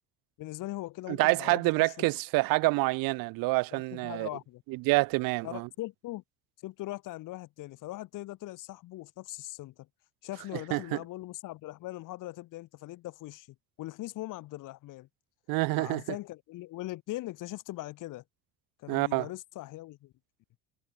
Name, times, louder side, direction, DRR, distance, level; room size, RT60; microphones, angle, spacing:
voice 1, 0.4-2.1 3.7-4.6 5.4-6.2 6.6-9.9 10.2-13.5 13.8-15.1 15.8-18.2 18.8-20.1, left 17 dB, 65° left, 1.3 m, -40 dB
voice 2, 1.1-4.3 4.7-5.7 10.7-10.8 15.5-16.0 18.9-19.3, right 24 dB, 75° right, 0.9 m, -27 dB
cardioid pair, 120°, 34 cm